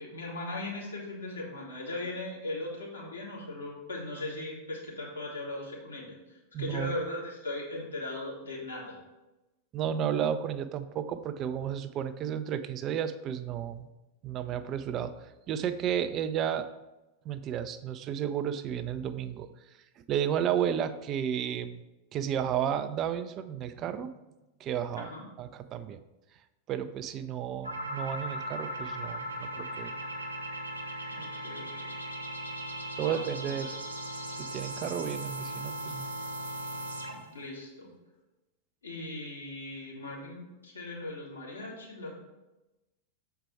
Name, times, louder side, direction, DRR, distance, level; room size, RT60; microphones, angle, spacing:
voice 1, 0.0-9.0 25.0-25.2 31.1-31.9 33.0-33.2 33.6-33.7 37.3-37.9 38.8-42.1, left 2 dB, 80° left, -5 dB, 2.1 m, -38 dB
voice 2, 6.5-7.0 9.7-13.9 14.2-15.1 15.5-16.7 17.3-19.5 20.1-21.8 22.1-24.1 24.6-25.1 25.4-26.0 26.7-29.9 33.0-33.8 34.4-36.1, right 9 dB, 35° right, 10 dB, 0.4 m, -32 dB
sound 1, 27.6-37.3, right 1 dB, 80° right, 0.9 m, -38 dB
6.7 x 4.6 x 4.5 m, 1.0 s
figure-of-eight pair, 90°, 0 cm